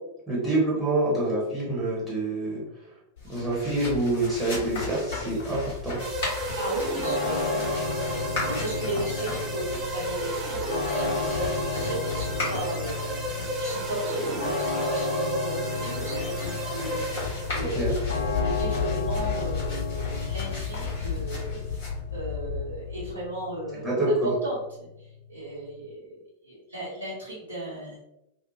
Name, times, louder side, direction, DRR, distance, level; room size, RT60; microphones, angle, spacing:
voice 1, 0.3-2.6 3.3-6.0 17.8-17.9 23.8-24.3, right 2 dB, ahead, -7 dB, 1.0 m, -26 dB
sound 1, 3.2-23.1, left 4 dB, 55° left, 1.2 m, -34 dB
sound 2, 6.0-17.8, right 2 dB, 25° right, 0.5 m, -32 dB
voice 2, 6.6-21.8 22.1-28.0, right 1 dB, 70° right, -7 dB, 0.8 m, -36 dB
sound 3, 7.0-25.9, left 4 dB, 75° left, 0.4 m, -34 dB
2.7 x 2.1 x 2.7 m, 0.87 s
figure-of-eight pair, 90°, 0 cm